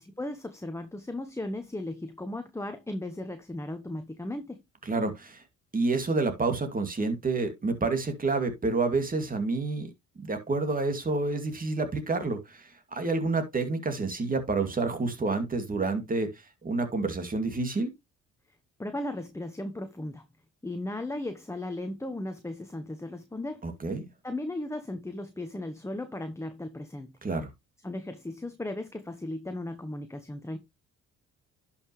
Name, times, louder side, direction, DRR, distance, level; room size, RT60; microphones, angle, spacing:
voice 1, 0.0-4.6 18.8-20.3 20.6-23.6 24.2-27.1 27.8-30.6, left 1 dB, 10° left, 1.1 m, -36 dB
voice 2, 4.9-5.4 5.7-16.3 16.6-17.9 23.6-24.1 27.2-27.5, right 3 dB, 30° right, 2.4 m, -29 dB
11.0 x 5.8 x 3.1 m
cardioid pair, 90°, 30 cm